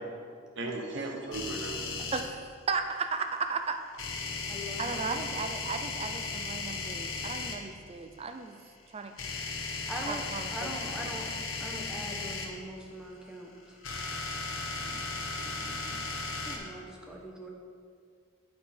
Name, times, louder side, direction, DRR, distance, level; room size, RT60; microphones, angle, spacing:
voice 1, 0.6-2.1 14.5-16.3, right 2 dB, 60° right, 2 dB, 0.9 m, -40 dB
sound 1, 1.3-2.2 4.0-7.6 9.2-12.5 13.6-16.6, left 4 dB, 75° left, 1.2 m, -36 dB
voice 2, 2.1-3.8 4.8-8.6 8.9-9.1 10.1-10.7 11.0-11.2, right 4 dB, 30° right, 7 dB, 0.4 m, -35 dB
voice 3, 4.5-5.4 9.9-11.3 11.6-13.8 16.4-17.5, equal, 5° right, -2 dB, 0.9 m, -41 dB
8.5 x 5.8 x 4.3 m, 2.2 s
head